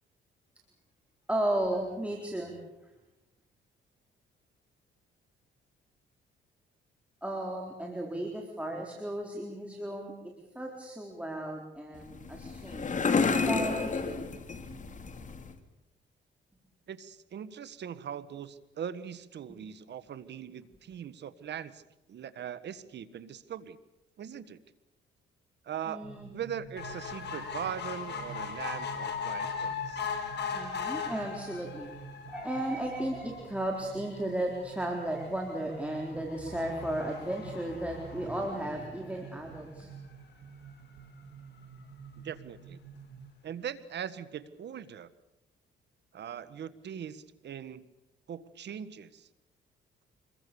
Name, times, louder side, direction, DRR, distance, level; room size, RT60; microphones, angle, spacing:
voice 1, 1.3-2.6 7.2-10.1 10.5-12.9 13.4-14.3 19.5-19.6 25.9-26.3 30.5-31.9 32.3-39.9, right 1 dB, 5° right, 0 dB, 4.1 m, -34 dB
sound 1, 11.9-15.6, left 4 dB, 40° left, 2.5 m, -31 dB
voice 2, 16.9-21.8 22.1-23.8 24.2-24.6 25.6-30.1 42.2-42.8 43.4-45.1 46.1-47.9 48.3-49.3, right 8 dB, 60° right, 14 dB, 1.4 m, -40 dB
sound 2, 26.0-43.3, right 6 dB, 80° right, 2.0 m, -50 dB
sound 3, 26.8-39.4 39.9-40.0 40.3-40.4 40.7-40.8, left 6 dB, 60° left, 4.9 m, -39 dB
26.5 x 22.0 x 7.1 m, 0.95 s
cardioid pair, 90°, 20 cm